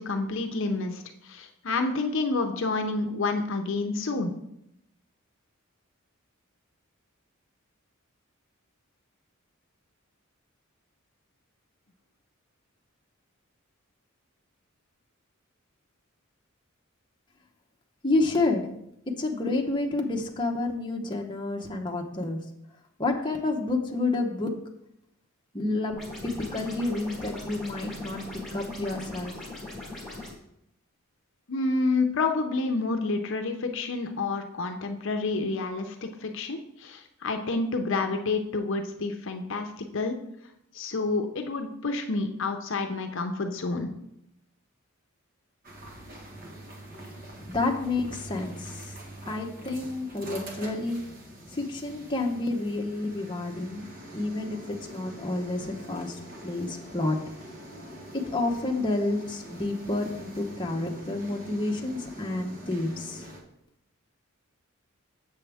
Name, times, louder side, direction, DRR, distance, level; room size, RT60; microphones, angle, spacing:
voice 1, 0.0-4.3 31.5-40.2 40.7-43.9, left 3 dB, 60° left, 5 dB, 0.7 m, -29 dB
voice 2, 18.0-18.7 19.2-22.4 23.0-24.5 25.5-26.0 26.2-28.2 28.5-29.3 47.4-48.9 49.3-51.0 51.5-53.9 54.1-57.2 58.1-63.3, left 2 dB, 20° left, 1 dB, 0.8 m, -29 dB
sound 1, 25.9-30.3, left 2 dB, ahead, 2.1 m, -40 dB
sound 2, 45.6-63.4, right 1 dB, 40° right, 1.3 m, -44 dB
7.3 x 6.9 x 3.4 m, 0.79 s
head